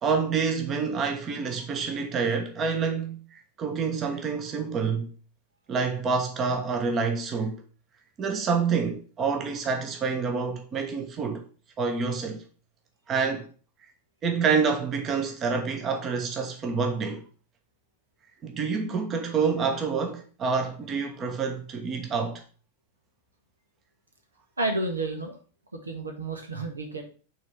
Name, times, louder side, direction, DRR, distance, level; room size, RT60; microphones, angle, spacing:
voice 1, 0.0-5.1 5.7-7.6 8.2-11.4 11.8-12.4 13.1-13.5 14.2-17.2 18.4-22.4, right 5 dB, 30° right, 1.2 m, -27 dB
voice 2, 24.6-25.4 25.8-27.0, right 2 dB, 75° right, 1.4 m, -30 dB
6.2 x 4.0 x 5.9 m
figure-of-eight pair, 90°, 0 cm